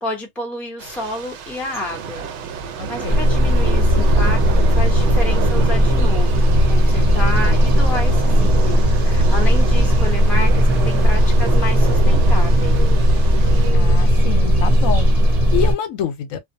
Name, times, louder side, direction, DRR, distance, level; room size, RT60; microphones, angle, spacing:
voice 1, 0.0-2.3 2.9-12.7, left 1 dB, ahead, 0.5 m, -30 dB
Thunder / Rain, 0.8-13.7, right 5 dB, 65° right, 0.8 m, -27 dB
voice 2, 2.8-3.2 13.7-15.1 15.5-16.4, left 9 dB, 80° left, 1.0 m, -26 dB
sound 1, 3.1-15.7, equal, 35° right, 0.7 m, -15 dB
2.6 x 2.2 x 2.6 m
omnidirectional pair, 1.4 m